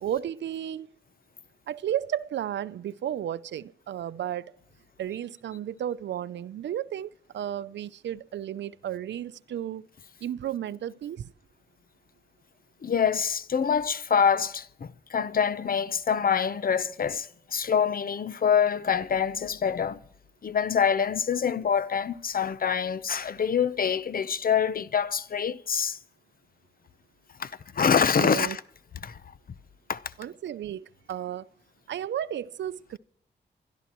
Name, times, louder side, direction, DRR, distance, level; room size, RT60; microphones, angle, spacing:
voice 1, 0.0-0.9 1.7-4.5 5.0-9.9 10.2-11.3 28.2-28.6 30.2-31.5 31.9-33.0, right 10 dB, 80° right, 0.5 m, -33 dB
voice 2, 12.8-20.0 20.4-26.0 27.4-28.6 29.0-29.2 29.9-30.0, left 7 dB, 50° left, 0.7 m, -25 dB
26.5 x 12.5 x 3.0 m
cardioid pair, 80°, 18 cm